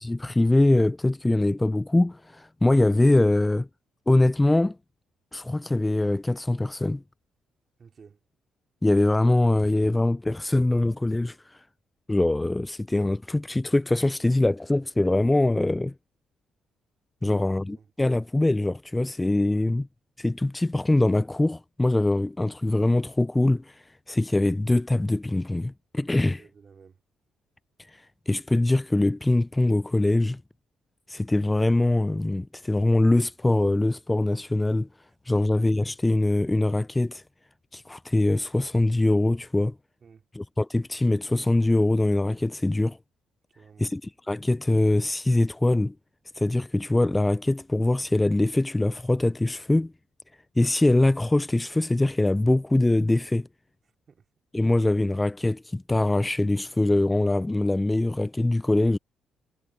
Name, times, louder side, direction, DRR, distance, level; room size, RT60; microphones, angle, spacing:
voice 1, 0.0-3.7 4.1-4.8 5.3-7.0 8.8-11.6 12.1-15.9 17.2-19.9 20.2-26.4 27.9-30.4 31.1-34.9 35.3-37.2 37.7-39.7 40.4-43.0 43.8-44.0 44.3-45.9 46.4-49.9 50.6-53.5 54.5-59.0, left 2 dB, 15° left, 0.3 m, -23 dB
voice 2, 7.8-8.2 17.2-17.9 19.5-19.7 26.2-27.0 40.0-40.3 43.5-44.0 53.8-54.3, right 6 dB, 45° right, 4.0 m, -53 dB
cardioid pair, 90°, 0 cm